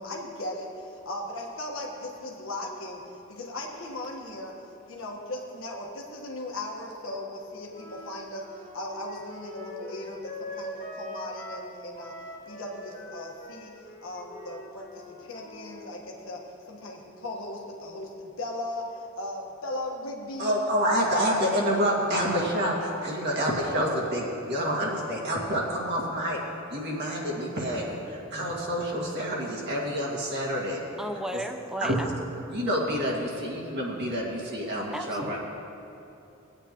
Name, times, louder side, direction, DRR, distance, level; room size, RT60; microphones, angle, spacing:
voice 1, 0.0-4.5 4.9-12.2 12.5-13.7 14.0-18.1 18.4-20.5 20.8-21.0, left 1 dB, 70° left, 0 dB, 1.4 m, -37 dB
Wind instrument woodwind instrument, 7.7-11.7 11.9-15.9, left 1 dB, 55° left, 1.5 m, -43 dB
voice 2, 20.4-26.4 26.7-30.8 31.8-32.0 32.5-35.4, equal, 55° right, -3 dB, 2.0 m, -28 dB
voice 3, 31.0-32.1 34.9-35.4, right 1 dB, 5° right, 4 dB, 0.6 m, -34 dB
18.0 x 8.9 x 3.0 m, 2.9 s
head